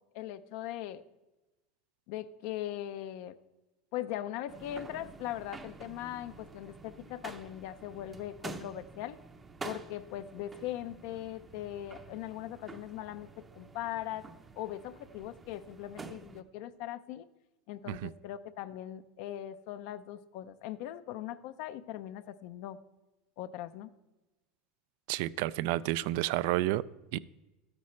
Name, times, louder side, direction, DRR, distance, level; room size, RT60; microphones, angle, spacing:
voice 1, 0.1-1.0 2.1-3.3 3.9-9.2 9.6-14.2 14.6-17.3 17.7-22.8 23.4-23.9, left 12 dB, 65° left, 11 dB, 0.5 m, -40 dB
sound 1, 4.5-16.4, right 4 dB, 20° right, 0.6 m, -48 dB
voice 2, 25.1-26.8 27.1-27.2, right 16 dB, 70° right, 19 dB, 0.3 m, -30 dB
12.5 x 9.7 x 3.2 m, 1.0 s
supercardioid pair, 135°, 0 cm